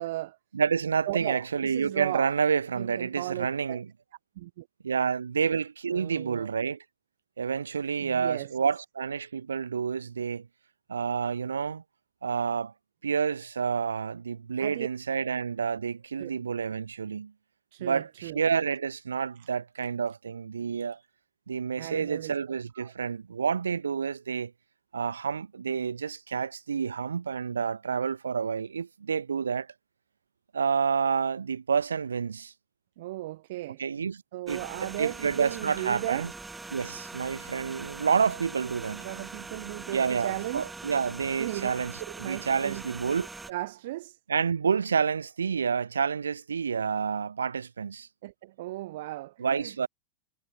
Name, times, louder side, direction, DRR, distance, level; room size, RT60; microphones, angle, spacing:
voice 1, 0.0-0.4 1.1-2.3 2.7-3.8 4.4-4.7 5.9-6.5 8.0-8.5 14.6-14.9 16.2-16.3 17.7-18.4 21.8-22.3 22.8-22.9 33.0-33.8 34.3-36.3 39.0-40.6 41.4-42.8 43.5-44.2 48.2-49.7, right 17 dB, 55° right, 7.2 m, -36 dB
voice 2, 0.5-3.9 4.8-6.8 7.4-10.5 10.9-11.8 12.2-12.7 13.0-17.3 17.8-21.0 21.5-24.5 24.9-29.7 30.5-32.5 33.8-34.2 34.5-36.3 36.7-39.1 39.9-43.3 44.3-48.1 49.4-49.9, right 6 dB, 70° right, 2.8 m, -29 dB
sound 1, 34.5-43.5, right 3 dB, 10° right, 7.4 m, -43 dB
figure-of-eight pair, 90°, 0 cm